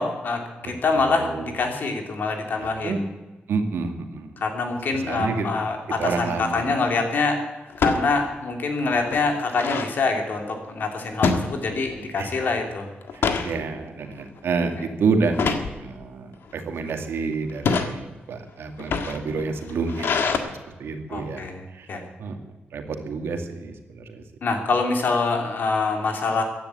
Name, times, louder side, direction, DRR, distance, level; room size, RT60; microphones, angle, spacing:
voice 1, 0.0-3.1 4.4-7.4 7.8-12.9 14.8-14.9 21.1-21.6 21.9-22.0 24.4-26.4, left 3 dB, 55° left, 3 dB, 2.9 m, -25 dB
voice 2, 2.6-3.0 3.5-4.3 5.1-5.5 6.0-6.7 12.2-12.5 13.1-20.4 20.8-21.4 21.7-21.9 22.2-22.4 22.7-24.2, right 4 dB, 85° right, 5 dB, 2.1 m, -28 dB
sound 1, 6.0-6.3 7.7-8.0 8.5-8.6 8.9-9.9 11.2-12.0 12.4-12.6 13.0-13.5 14.1-14.4 15.3-15.7 16.5-16.9 17.5-17.9 18.7-20.4, left 5 dB, 75° left, 1.6 m, -25 dB
15.5 x 10.5 x 8.3 m, 1.2 s
wide cardioid pair, 175°, 4 cm